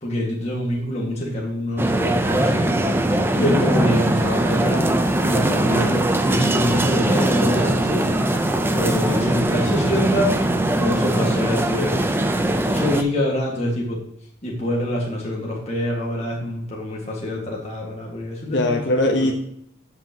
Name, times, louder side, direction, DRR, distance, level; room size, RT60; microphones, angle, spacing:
voice 1, 0.0-2.7 3.1-4.9 5.2-5.9 6.2-8.5 8.7-10.5 10.8-12.1 12.7-14.0 14.4-18.8, equal, 35° left, -3 dB, 1.7 m, -25 dB
sound 1, 1.8-13.0, right 1 dB, 10° right, 0.5 m, -20 dB
voice 2, 3.3-3.7 5.6-6.1 18.5-19.3, left 1 dB, 60° left, 1 dB, 1.0 m, -22 dB
14.0 x 5.8 x 2.9 m, 0.71 s
head